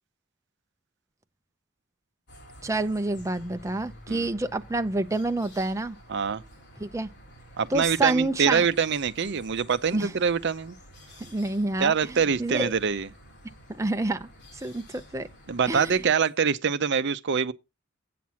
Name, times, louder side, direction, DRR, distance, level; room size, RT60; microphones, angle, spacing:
sound 1, 2.3-16.1, equal, 50° left, 2.7 m, -50 dB
voice 1, 2.6-6.0 6.8-7.1 7.7-8.7 9.9-10.1 11.3-11.9 12.4-12.7 13.8-14.3 14.6-14.8 15.1-15.3 15.7-15.9, right 2 dB, 15° right, 0.6 m, -27 dB
voice 2, 6.1-6.4 7.6-10.8 11.8-13.1 15.5-17.5, right 6 dB, 55° right, 0.6 m, -25 dB
8.4 x 5.9 x 5.8 m
head